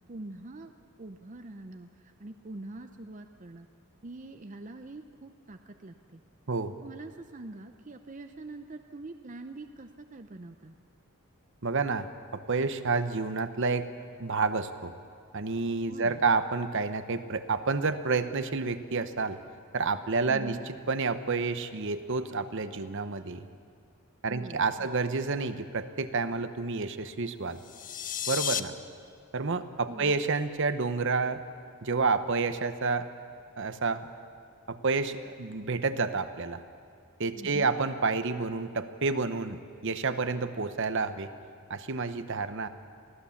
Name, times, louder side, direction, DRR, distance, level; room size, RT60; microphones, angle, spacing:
voice 1, 0.1-0.7 1.0-3.7 4.0-6.2 6.8-10.7 15.9-16.2 20.3-20.6 24.3-24.9 29.9-30.1 37.4-37.7, right 2 dB, 35° right, 6 dB, 0.6 m, -44 dB
voice 2, 11.6-12.1 12.3-13.9 14.2-14.9 15.3-19.4 19.7-23.5 24.2-27.6 28.3-28.7 29.3-31.4 31.8-33.1 33.6-34.1 34.7-36.6 37.2-41.3 41.7-42.7, right 4 dB, 60° right, 10 dB, 0.9 m, -29 dB
sound 1, 27.6-28.6, left 9 dB, 40° left, 0.6 m, -32 dB
24.0 x 16.5 x 7.2 m, 2.3 s
head